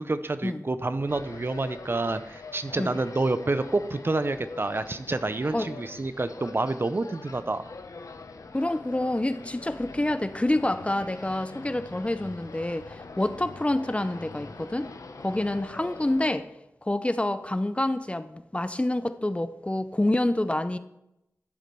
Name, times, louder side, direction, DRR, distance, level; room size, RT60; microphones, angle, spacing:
voice 1, 0.0-7.7, right 2 dB, 40° right, 0.6 m, -28 dB
sound 1, 1.1-16.3, left 3 dB, 70° left, 0.7 m, -44 dB
voice 2, 8.5-14.9 15.2-16.5 16.8-20.8, left 1 dB, 20° left, 0.5 m, -27 dB
11.5 x 5.0 x 5.3 m
wide cardioid pair, 50°, 6 cm